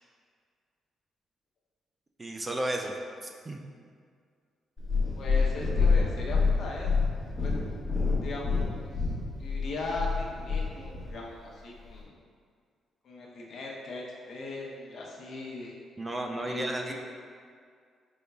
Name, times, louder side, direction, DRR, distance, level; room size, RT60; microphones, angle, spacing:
voice 1, 2.2-2.9 3.2-3.6 16.0-16.9, right 1 dB, 20° right, 2 dB, 0.3 m, -33 dB
Purr, 4.8-11.1 11.8-11.9, left 4 dB, 5° left, 1.4 m, -27 dB
voice 2, 5.2-6.9 7.4-7.6 8.2-8.9 9.3-12.1 13.0-15.7 16.5-16.9, left 2 dB, 55° left, -3 dB, 0.8 m, -38 dB
5.2 x 3.9 x 2.3 m, 2.1 s
cardioid pair, 135°, 0 cm